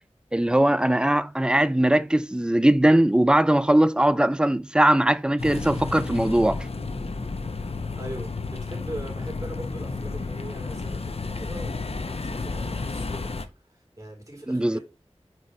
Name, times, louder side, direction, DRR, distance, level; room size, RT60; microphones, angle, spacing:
voice 1, 0.3-6.7 14.5-14.8, right 1 dB, 10° right, 0.4 m, -20 dB
sound 1, 5.4-13.5, left 3 dB, 60° left, 0.6 m, -32 dB
voice 2, 7.9-13.3 14.0-14.8, right 1 dB, 30° right, 3.6 m, -40 dB
4.5 x 4.4 x 4.8 m
wide cardioid pair, 45°, 11 cm